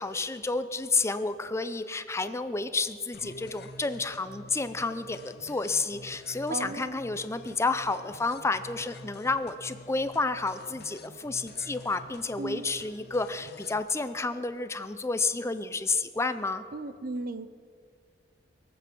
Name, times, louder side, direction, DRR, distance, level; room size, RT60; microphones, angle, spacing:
voice 1, 0.0-16.6, left 3 dB, 15° left, 11 dB, 0.5 m, -30 dB
sound 1, 3.1-13.8, left 2 dB, 60° left, 0.8 m, -48 dB
voice 2, 6.5-7.0 12.4-12.6 16.7-17.5, right 2 dB, 50° right, 13 dB, 0.6 m, -35 dB
22.5 x 8.3 x 6.1 m, 2.2 s
head